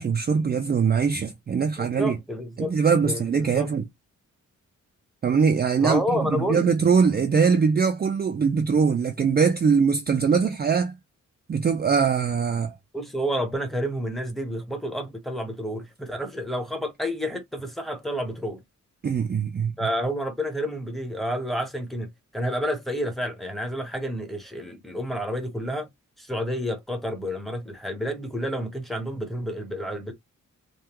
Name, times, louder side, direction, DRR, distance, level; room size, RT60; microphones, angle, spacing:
voice 1, 0.0-2.2 2.6-3.8 5.2-11.0 11.5-12.8 19.0-19.9, right 6 dB, 30° right, 0.4 m, -22 dB
voice 2, 1.8-2.7 3.0-3.7 5.8-6.6 12.9-18.6 19.8-25.9 26.2-30.1, equal, ahead, 0.9 m, -30 dB
3.5 x 2.3 x 2.9 m
wide cardioid pair, 125°, 31 cm